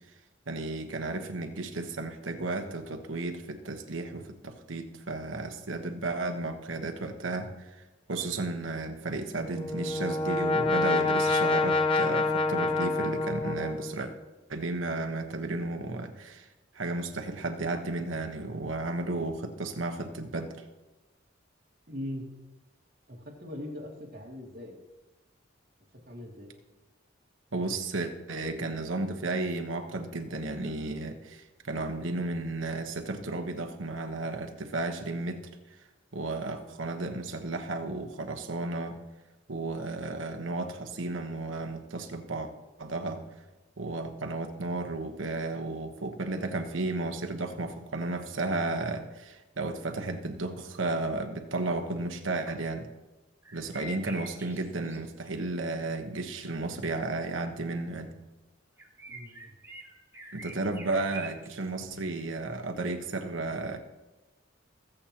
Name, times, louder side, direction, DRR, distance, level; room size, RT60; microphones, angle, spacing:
voice 1, 0.5-14.1 14.5-16.5 16.7-20.6 27.5-35.4 36.1-39.0 39.5-42.5 42.8-43.2 43.8-52.9 53.5-58.1 60.3-63.8, right 2 dB, 85° right, 6 dB, 1.2 m, -33 dB
Brass instrument, 9.4-14.2, left 3 dB, 25° left, 0.7 m, -27 dB
voice 2, 21.9-22.3 23.1-24.8 26.1-26.5 59.1-59.5, left 1 dB, 50° right, -2 dB, 2.5 m, -40 dB
sound 1, 53.4-55.3 58.8-61.7, right 1 dB, 15° right, 1.0 m, -46 dB
21.5 x 7.9 x 3.0 m, 1.1 s
head